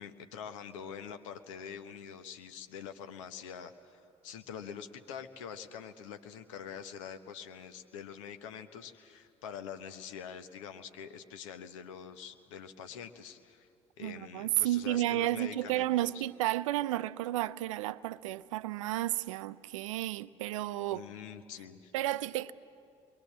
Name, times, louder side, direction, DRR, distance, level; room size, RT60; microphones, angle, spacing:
voice 1, 0.0-13.7 14.0-16.3 20.9-21.9, left 7 dB, 75° left, 1.1 m, -45 dB
voice 2, 14.0-21.0 21.9-22.5, right 15 dB, 80° right, 0.5 m, -32 dB
28.0 x 22.5 x 7.4 m
hypercardioid pair, 55°, 16 cm